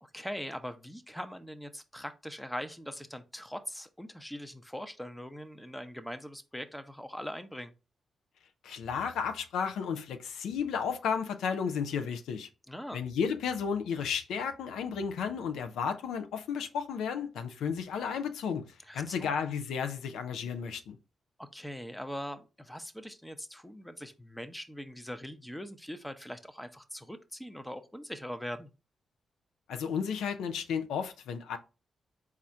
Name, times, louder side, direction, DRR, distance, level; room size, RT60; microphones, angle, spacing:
voice 1, 0.0-7.7 12.7-13.0 18.9-19.3 21.4-28.7, equal, 5° left, 0.7 m, -41 dB
voice 2, 8.6-12.5 12.9-21.0 29.7-31.6, left 6 dB, 80° left, 0.4 m, -33 dB
4.2 x 2.4 x 4.2 m
supercardioid pair, 45°, 0 cm